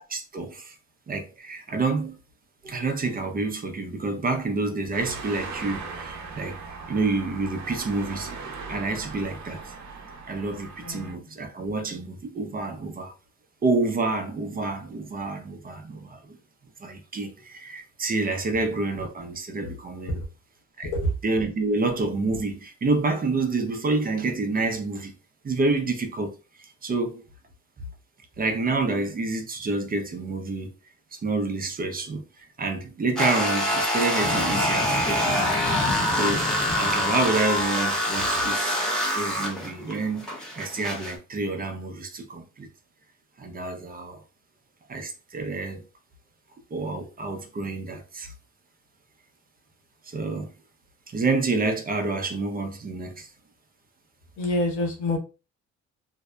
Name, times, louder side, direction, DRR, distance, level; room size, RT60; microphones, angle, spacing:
voice 1, 0.1-0.8 1.1-2.2 2.6-8.3 8.7-9.7 10.3-13.1 13.6-16.4 16.8-20.2 20.8-20.9 21.2-25.1 25.4-27.2 28.4-30.7 31.1-35.7 36.2-38.8 39.1-42.7 43.4-44.2 44.9-45.8 46.7-48.3 50.0-50.5 51.1-53.3, right 3 dB, 30° right, 0.5 m, -28 dB
sound 1, 4.9-11.1, right 4 dB, 65° right, 0.7 m, -39 dB
voice 2, 10.8-11.4 20.1-20.3 20.8-21.1 54.4-55.2, left 1 dB, 75° left, 0.9 m, -27 dB
sound 2, 33.2-41.1, equal, ahead, 0.9 m, -25 dB
sound 3, 34.2-38.0, left 2 dB, 40° left, 0.7 m, -33 dB
2.6 x 2.1 x 2.2 m
cardioid pair, 90°, 30 cm